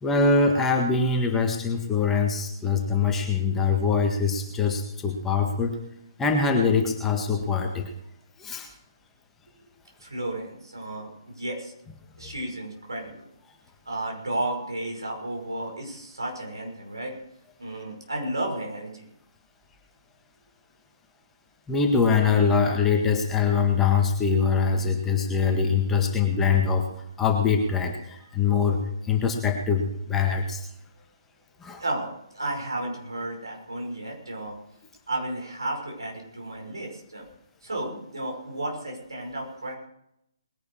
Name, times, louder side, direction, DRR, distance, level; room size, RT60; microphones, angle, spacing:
voice 1, 0.0-5.8 6.2-7.9 8.4-8.7 12.2-12.3 21.7-26.9 27.2-30.6 31.6-31.8, left 5 dB, 10° left, 2 dB, 1.7 m, -23 dB
voice 2, 10.0-11.7 12.2-13.2 13.9-17.1 17.6-19.1 31.8-34.6 35.1-37.3 37.6-39.8, right 1 dB, 75° right, 1 dB, 5.7 m, -33 dB
20.5 x 10.5 x 4.8 m, 0.77 s
figure-of-eight pair, 135°, 2 cm